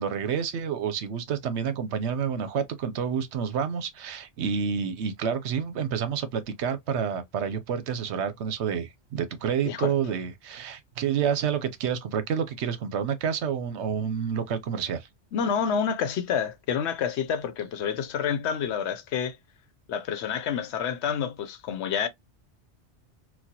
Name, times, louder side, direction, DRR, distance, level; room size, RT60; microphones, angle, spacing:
voice 1, 0.0-15.1, right 7 dB, 75° right, 0.9 m, -29 dB
voice 2, 15.3-19.4 19.9-22.1, left 7 dB, 75° left, 0.9 m, -28 dB
4.1 x 2.2 x 2.8 m
omnidirectional pair, 1.2 m